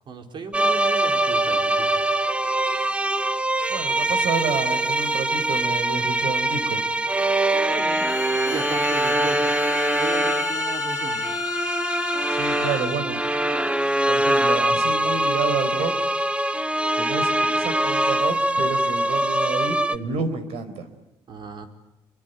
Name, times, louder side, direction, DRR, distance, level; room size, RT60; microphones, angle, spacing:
voice 1, 0.1-2.0 7.7-8.1 8.5-9.4 10.0-11.2 21.3-21.7, right 4 dB, 50° right, 5 dB, 4.6 m, -35 dB
sound 1, 0.5-20.0, right 1 dB, 10° right, 1.1 m, -23 dB
voice 2, 3.7-6.9 12.3-13.2 14.1-15.9 16.9-20.9, right 5 dB, 80° right, 12 dB, 4.7 m, -29 dB
Bowed string instrument, 7.7-13.1, left 7 dB, 35° left, 1.8 m, -32 dB
30.0 x 23.0 x 8.2 m, 0.97 s
cardioid pair, 110°, 10 cm